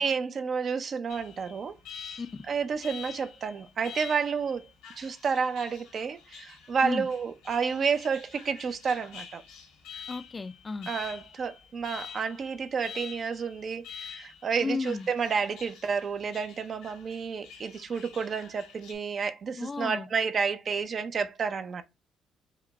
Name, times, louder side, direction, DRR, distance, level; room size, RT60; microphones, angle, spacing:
voice 1, 0.0-2.2 2.5-4.7 5.0-9.4 10.9-21.8, right 5 dB, 50° right, 0.6 m, -30 dB
Alarm, 1.1-18.9, left 7 dB, 90° left, 1.6 m, -47 dB
voice 2, 10.1-10.9 14.6-15.1 19.6-20.1, left 4 dB, 30° left, 0.4 m, -33 dB
4.9 x 2.2 x 4.0 m
cardioid pair, 85°, 0 cm